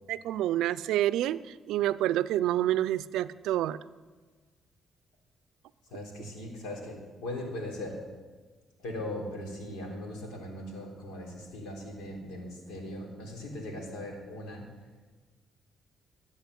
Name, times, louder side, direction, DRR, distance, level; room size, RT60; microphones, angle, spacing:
voice 1, 0.1-1.4 1.7-3.8, right 13 dB, 90° right, 16 dB, 0.4 m, -28 dB
voice 2, 5.9-8.0 8.8-14.7, left 1 dB, 90° left, -1 dB, 3.7 m, -39 dB
13.5 x 8.5 x 8.1 m, 1.4 s
cardioid pair, 90°, 0 cm